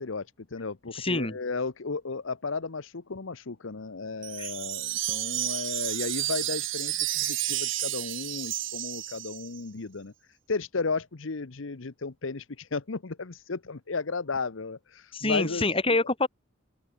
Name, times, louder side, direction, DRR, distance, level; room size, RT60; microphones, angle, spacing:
voice 1, 0.0-10.1 10.5-15.6, left 4 dB, 75° left, 0.9 m, -34 dB
voice 2, 0.9-1.4 4.4-4.5 15.1-16.3, left 2 dB, 30° left, 2.9 m, -26 dB
Wind chime, 4.2-9.6, right 15 dB, 70° right, 1.9 m, -31 dB
open air
head